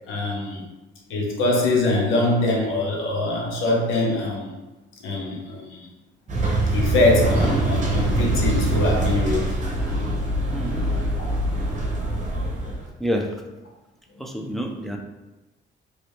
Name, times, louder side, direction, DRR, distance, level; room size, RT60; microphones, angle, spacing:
voice 1, 0.1-0.6 1.1-4.5 5.0-5.9 6.7-9.5, left 2 dB, 90° left, -1 dB, 0.9 m, -23 dB
sound 1, 6.3-12.8, right 1 dB, 40° right, 0.8 m, -23 dB
voice 2, 14.2-15.0, equal, ahead, 1 dB, 0.5 m, -27 dB
3.1 x 2.7 x 3.2 m, 1.1 s
cardioid pair, 90°, 20 cm